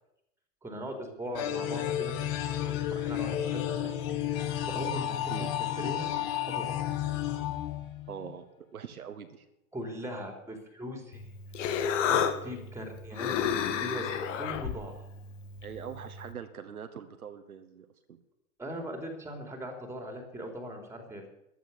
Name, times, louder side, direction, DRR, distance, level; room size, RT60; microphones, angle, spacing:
voice 1, 0.6-2.1 2.5-3.9 4.7-5.3 5.8-6.9 9.7-11.3 11.8-15.0 18.6-21.3, equal, 5° right, 5 dB, 3.6 m, -40 dB
sound 1, 1.3-8.3, left 11 dB, 40° left, 1.7 m, -32 dB
voice 2, 8.1-8.4 8.7-9.4 15.6-17.9, right 7 dB, 75° right, 8 dB, 1.8 m, -42 dB
Human voice, 11.1-16.3, left 8 dB, 55° left, 1.5 m, -32 dB
14.5 x 11.0 x 6.8 m, 0.81 s
figure-of-eight pair, 90°, 44 cm